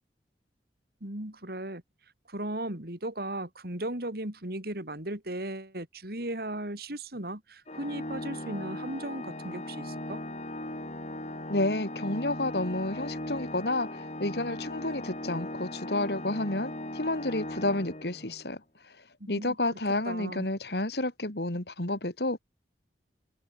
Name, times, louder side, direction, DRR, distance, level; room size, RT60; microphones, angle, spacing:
voice 1, 1.0-1.8 2.3-10.2 19.2-19.6 20.1-20.4, right 1 dB, 60° right, 4.0 m, -36 dB
Organ, 7.7-18.5, left 1 dB, 40° left, 5.2 m, -38 dB
voice 2, 11.5-19.0 19.3-22.4, left 2 dB, 65° left, 3.0 m, -30 dB
head